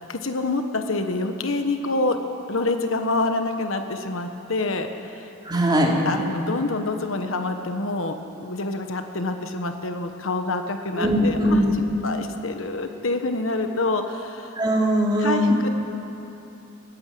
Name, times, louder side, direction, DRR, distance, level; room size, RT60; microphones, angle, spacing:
voice 1, 0.1-2.2 2.5-5.3 6.0-11.6 12.0-14.6 15.2-15.7, left 2 dB, 70° left, 6 dB, 1.3 m, -27 dB
voice 2, 5.4-5.9 11.0-11.7 14.6-15.5, equal, 20° right, -2 dB, 3.1 m, -20 dB
20.5 x 19.5 x 7.7 m, 2.9 s
head